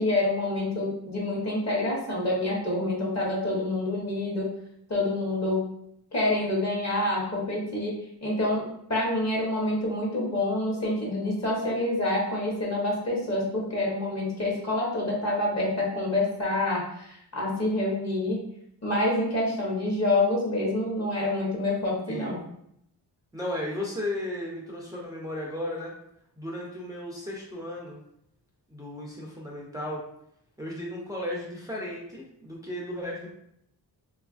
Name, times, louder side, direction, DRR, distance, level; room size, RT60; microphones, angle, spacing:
voice 1, 0.0-4.5 4.9-5.6 6.1-8.6 8.9-18.4 18.8-22.4, left 2 dB, 40° left, -4 dB, 0.8 m, -27 dB
voice 2, 23.3-25.9 26.4-28.0 28.7-30.0 30.6-33.3, left 1 dB, 10° right, -4 dB, 0.3 m, -35 dB
2.9 x 2.4 x 2.4 m, 0.75 s
wide cardioid pair, 130°, 42 cm